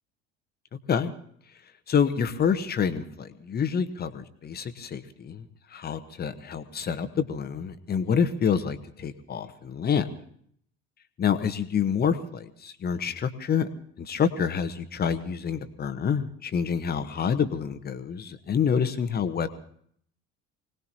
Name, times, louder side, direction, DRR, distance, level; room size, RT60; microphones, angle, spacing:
voice 1, 1.9-10.1 11.2-13.7 14.0-19.5, left 7 dB, 25° left, 9 dB, 1.2 m, -27 dB
25.0 x 19.0 x 2.9 m, 0.65 s
figure-of-eight pair, 65°, 36 cm